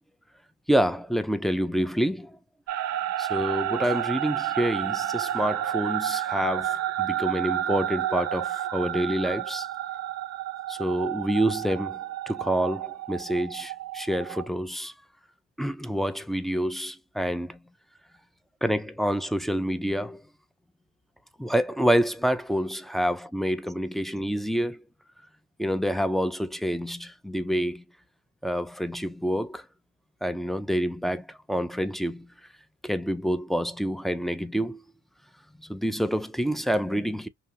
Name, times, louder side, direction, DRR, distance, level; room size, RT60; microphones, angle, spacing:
voice 1, 0.7-2.4 3.2-9.7 10.7-12.0 12.3-14.9 15.6-17.6 18.6-20.2 21.4-24.8 25.6-27.8 28.4-29.6 30.2-32.3 32.8-34.8 35.6-37.3, equal, ahead, 0.3 m, -27 dB
sound 1, 2.7-14.5, right 12 dB, 60° right, 0.5 m, -30 dB
2.8 x 2.7 x 2.2 m
cardioid pair, 90°, 30 cm